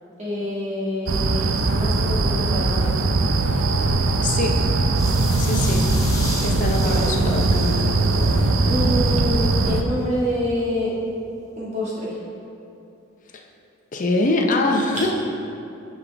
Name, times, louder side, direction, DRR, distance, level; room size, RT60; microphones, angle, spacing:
voice 1, 0.2-3.0 6.6-7.1 8.7-10.9 11.6-12.2 14.9-15.1, left 1 dB, 35° right, -6 dB, 1.8 m, -27 dB
sound 1, 1.1-9.8, right 2 dB, 85° right, 0.5 m, -20 dB
voice 2, 4.2-4.5 5.4-5.8 6.4-8.0 13.3-13.4 13.9-15.1, left 2 dB, 40° left, 2 dB, 0.7 m, -23 dB
sound 2, 4.9-9.0, left 2 dB, 15° left, 1.0 m, -36 dB
9.9 x 5.4 x 3.4 m, 2.7 s
head